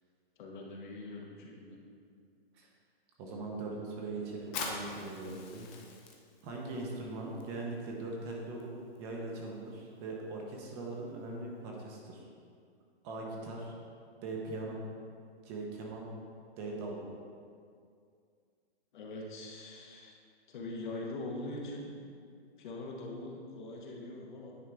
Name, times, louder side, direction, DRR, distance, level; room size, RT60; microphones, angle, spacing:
voice 1, 0.4-1.8 18.9-20.1 20.5-21.9 22.6-24.5, left 2 dB, 50° left, -1 dB, 1.2 m, -42 dB
voice 2, 3.2-5.7 6.4-8.7 9.0-12.3 13.0-13.7 14.2-14.8 15.4-16.1 16.6-17.0, right 2 dB, 25° right, -1 dB, 0.9 m, -40 dB
Fire, 4.4-11.6, left 4 dB, 15° left, 0.4 m, -47 dB
9.5 x 4.6 x 3.5 m, 2.3 s
hypercardioid pair, 150°, 31 cm